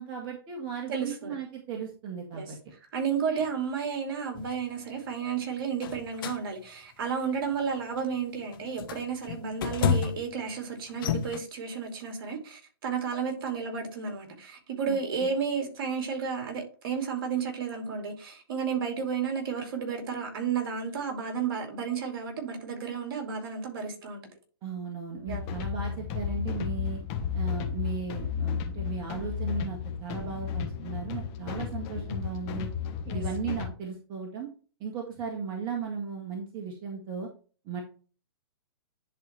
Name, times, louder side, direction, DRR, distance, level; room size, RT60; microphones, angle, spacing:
voice 1, 0.0-2.6 3.3-3.4 14.9-15.0 24.6-27.0 27.3-32.7 33.1-34.5 34.8-37.3 37.7-37.8, right 6 dB, 35° right, 1.8 m, -36 dB
voice 2, 0.9-1.3 2.3-2.5 2.9-24.2 25.3-25.5 33.1-33.2, right 6 dB, 55° right, 2.7 m, -32 dB
sound 1, 4.3-4.5 5.8-6.4 7.0-7.3 8.0-8.1 8.5-10.4 10.9-11.4, left 7 dB, 55° left, 1.0 m, -30 dB
sound 2, 25.3-33.7, left 7 dB, 40° left, 1.3 m, -33 dB
10.5 x 4.1 x 3.4 m
hypercardioid pair, 120°, 13 cm